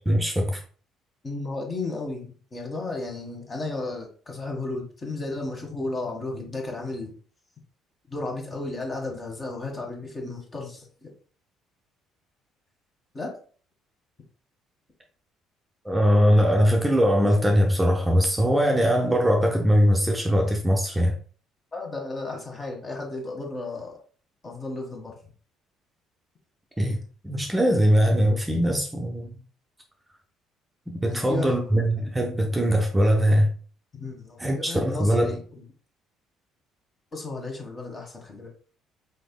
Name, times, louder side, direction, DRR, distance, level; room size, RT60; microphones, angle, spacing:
voice 1, 0.1-0.6 15.8-21.2 26.8-29.4 30.9-33.5 34.4-35.4, equal, 10° right, 0.8 m, -21 dB
voice 2, 1.2-7.1 8.1-11.1 13.1-13.3 21.7-24.0 24.4-25.2 31.1-31.7 33.9-35.6 37.1-38.5, left 2 dB, 30° left, 1.4 m, -34 dB
5.1 x 3.5 x 2.2 m
figure-of-eight pair, 50°, 0 cm